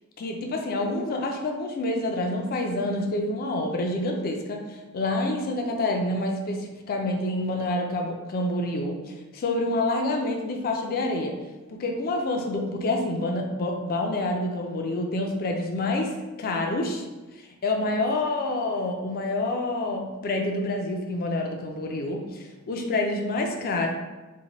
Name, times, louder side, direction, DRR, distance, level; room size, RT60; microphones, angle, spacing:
voice 1, 0.2-11.3 11.7-17.1 17.3-23.9, left 2 dB, 45° left, 2 dB, 0.3 m, -27 dB
2.6 x 2.1 x 2.9 m, 1.2 s
head